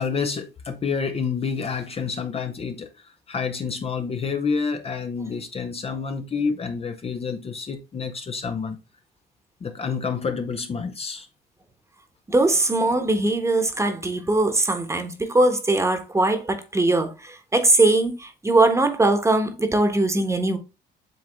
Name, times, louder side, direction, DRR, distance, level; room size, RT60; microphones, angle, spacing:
voice 1, 0.0-2.9 3.3-8.8 9.6-11.3, left 5 dB, 30° left, 0.7 m, -28 dB
voice 2, 12.3-20.6, right 2 dB, 15° right, 1.2 m, -21 dB
7.8 x 3.5 x 3.6 m
cardioid pair, 110°, 19 cm